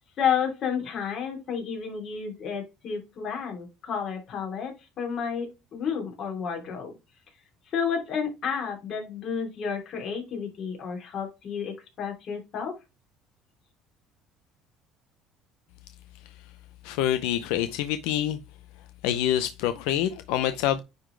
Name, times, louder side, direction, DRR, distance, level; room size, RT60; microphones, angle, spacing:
voice 1, 0.2-6.9 7.7-12.8, left 7 dB, 50° left, 3.0 m, -31 dB
voice 2, 16.8-18.4 19.0-20.8, left 11 dB, 85° left, 0.5 m, -26 dB
9.6 x 3.9 x 3.3 m
cardioid pair, 120°, 0 cm